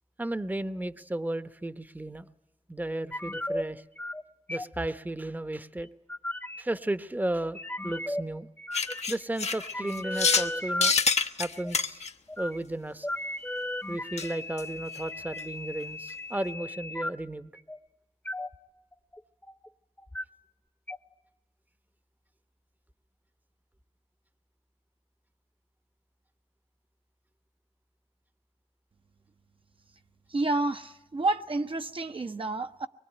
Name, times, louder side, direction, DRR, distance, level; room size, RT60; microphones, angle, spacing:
voice 1, 0.2-2.3 2.7-3.8 4.5-5.9 6.6-8.5 9.1-11.0 11.4-12.0 12.4-13.1 13.9-17.5, right 1 dB, 15° right, 0.9 m, -34 dB
sound 1, 3.1-3.6 4.0-4.2 4.5-4.9 5.8-6.6 7.5-8.2 8.6-9.2 9.5-10.9 11.6-11.7 12.3-12.6 13.0-17.1 17.6-17.8 18.3-18.6 18.9-19.7 20.0-20.2 20.9-21.0, left 1 dB, 15° left, 0.9 m, -35 dB
sound 2, 8.7-10.5 10.8-12.1 14.2-14.3 14.6-14.7 14.9-15.0 15.4-15.5, left 5 dB, 70° left, 1.0 m, -26 dB
voice 2, 30.3-32.9, right 2 dB, 50° right, 0.9 m, -29 dB
24.0 x 22.5 x 10.0 m
wide cardioid pair, 70°, 11 cm